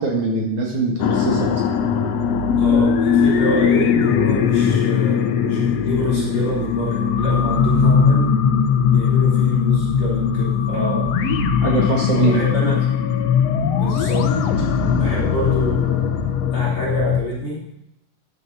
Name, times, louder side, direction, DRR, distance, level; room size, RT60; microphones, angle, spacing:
voice 1, 0.0-1.6 11.6-12.4 14.9-15.1, right 3 dB, 60° right, -1 dB, 3.0 m, -22 dB
sound 1, 1.0-17.2, left 7 dB, 85° left, 1.4 m, -19 dB
voice 2, 2.6-8.3 8.9-11.2 12.1-12.9 13.7-14.4 14.7-16.1 16.5-17.6, equal, 35° left, -7 dB, 4.3 m, -27 dB
13.5 x 10.5 x 4.1 m, 0.86 s
omnidirectional pair, 4.2 m